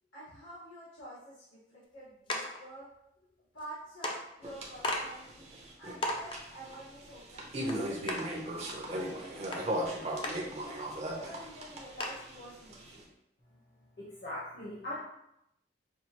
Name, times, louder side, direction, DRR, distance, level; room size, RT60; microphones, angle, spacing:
voice 1, 0.1-2.9 3.5-10.1 10.6-13.0, right 1 dB, 90° left, -13 dB, 1.5 m, -50 dB
sound 1, 2.3-2.6 3.6-3.7 4.0-4.2 4.8-5.0 5.5-5.6 6.0-6.4 7.7-7.8 8.1-8.2 9.5-9.6 10.2-10.3 10.9-11.0 11.3-11.4 12.0-12.2, left 1 dB, 25° left, 0.4 m, -34 dB
sound 2, 4.4-13.0, right 1 dB, 35° right, 0.6 m, -38 dB
voice 2, 14.0-15.0, left 1 dB, 55° left, -7 dB, 1.0 m, -40 dB
5.3 x 2.5 x 2.9 m, 0.81 s
head